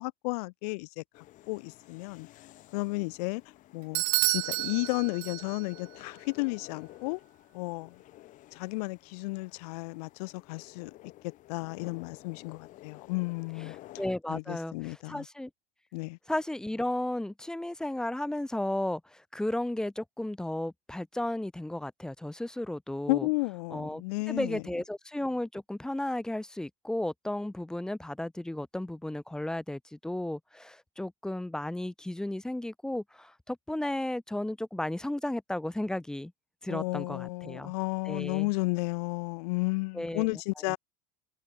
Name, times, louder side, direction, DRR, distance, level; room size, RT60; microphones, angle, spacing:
voice 1, 0.0-2.3 2.7-3.4 3.7-7.2 7.5-8.0 8.5-11.0 11.5-13.8 14.3-15.3 15.9-16.2 23.1-24.6 36.7-40.8, left 26 dB, 75° left, 0.5 m, -33 dB
sound 1, 1.1-14.1, left 16 dB, 40° left, 1.1 m, -52 dB
Bell / Doorbell, 3.9-5.8, right 27 dB, 75° right, 0.9 m, -30 dB
voice 2, 14.0-15.5 16.3-23.3 23.7-36.3 36.6-37.7 38.1-38.5 39.9-40.3 40.6-40.8, left 1 dB, 5° left, 0.5 m, -34 dB
supercardioid pair, 145°, 20 cm